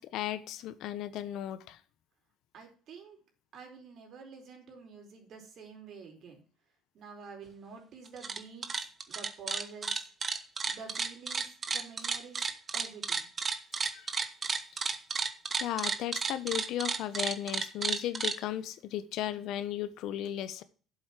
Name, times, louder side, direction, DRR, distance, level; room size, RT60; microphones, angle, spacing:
voice 1, 0.0-1.8 13.9-14.1 15.6-20.6, left 11 dB, 70° left, 14 dB, 1.1 m, -35 dB
voice 2, 2.5-3.2 3.5-6.4 6.9-10.1 10.6-13.3, right 5 dB, 55° right, 3 dB, 4.4 m, -49 dB
sound 1, 8.1-8.4 8.6-18.4, right 5 dB, 30° right, 1.2 m, -32 dB
8.1 x 8.0 x 6.0 m, 0.41 s
cardioid pair, 120°, 0 cm